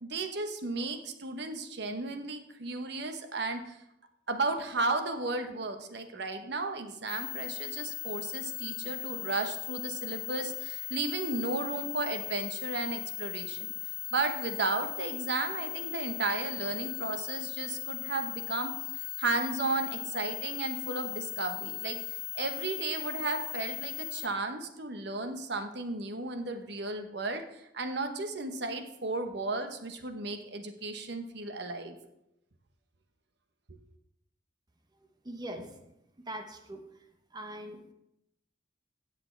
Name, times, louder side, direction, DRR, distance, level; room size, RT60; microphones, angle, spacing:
voice 1, 0.0-3.8 4.3-13.7 14.1-18.7 19.2-22.0 22.3-32.0 33.7-33.8, right 3 dB, 65° right, 7 dB, 1.0 m, -34 dB
sound 1, 7.1-24.3, left 21 dB, 65° left, 0.4 m, -38 dB
voice 2, 35.2-35.8 36.2-36.8 37.3-37.9, right 1 dB, 25° right, 5 dB, 1.0 m, -41 dB
16.0 x 6.9 x 3.3 m, 0.83 s
head